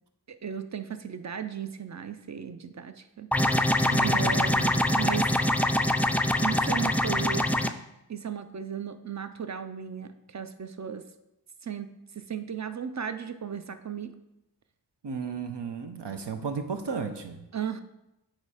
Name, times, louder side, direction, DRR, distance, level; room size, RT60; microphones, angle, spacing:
voice 1, 0.4-3.3 4.0-5.3 6.4-7.7 8.1-11.0 11.6-11.9 12.2-14.1 17.5-17.8, right 7 dB, 40° right, 10 dB, 0.6 m, -35 dB
sound 1, 3.3-7.7, left 1 dB, 5° left, 0.3 m, -24 dB
voice 2, 3.9-4.4 15.0-17.4, right 5 dB, 75° right, 6 dB, 0.8 m, -34 dB
8.7 x 3.2 x 4.9 m, 0.90 s
wide cardioid pair, 55°, 42 cm